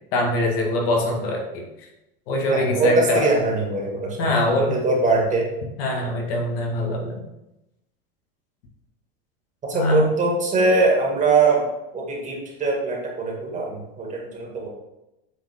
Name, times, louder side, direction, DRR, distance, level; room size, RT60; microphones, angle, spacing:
voice 1, 0.1-1.7 2.3-3.3 4.2-4.8 5.8-7.2 9.7-10.1, left 1 dB, 75° left, 0 dB, 2.0 m, -23 dB
voice 2, 2.5-5.4 9.7-11.6 11.9-14.7, right 3 dB, 25° right, -1 dB, 2.1 m, -22 dB
8.5 x 4.6 x 3.7 m, 0.92 s
supercardioid pair, 130°, 29 cm